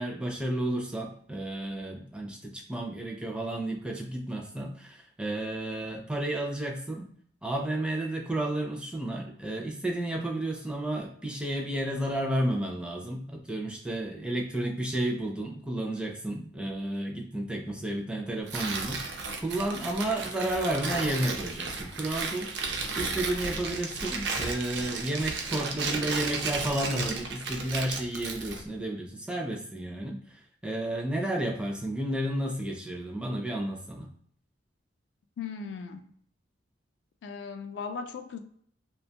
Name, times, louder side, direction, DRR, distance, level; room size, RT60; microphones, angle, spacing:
voice 1, 0.0-7.1 7.4-22.5 23.0-34.1, right 1 dB, 5° right, 0.4 m, -32 dB
Tearing, 18.5-28.6, right 4 dB, 65° right, 0.4 m, -34 dB
voice 2, 35.4-36.1 37.2-38.4, left 5 dB, 70° left, 0.3 m, -37 dB
2.5 x 2.2 x 2.7 m
head